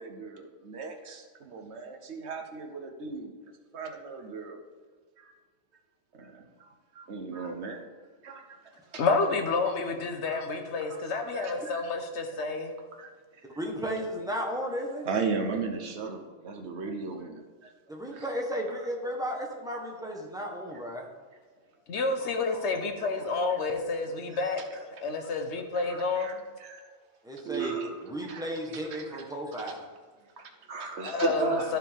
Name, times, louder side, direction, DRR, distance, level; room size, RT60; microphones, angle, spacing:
voice 1, 0.0-3.3 3.7-4.6 5.2-5.3 6.1-7.8 8.2-9.0 9.6-9.8 10.2-10.6 10.9-11.8 13.0-13.6 14.5-14.7 15.0-17.7 18.1-18.3 20.0-20.1 20.7-20.8 22.2-22.7 23.0-23.6 24.3-24.9 25.2-25.3 25.7-26.9 27.4-29.3 29.5-29.8 30.2-31.8, right 4 dB, 75° right, 4 dB, 1.2 m, -37 dB
voice 2, 9.0-12.7 21.9-24.6 25.0-26.4 31.0-31.8, left 4 dB, 85° left, 5 dB, 1.2 m, -29 dB
voice 3, 13.6-15.1 17.9-21.1 27.2-27.7 28.1-29.8, equal, 5° right, -1 dB, 1.2 m, -34 dB
13.5 x 4.5 x 3.6 m, 1.5 s
omnidirectional pair, 1.1 m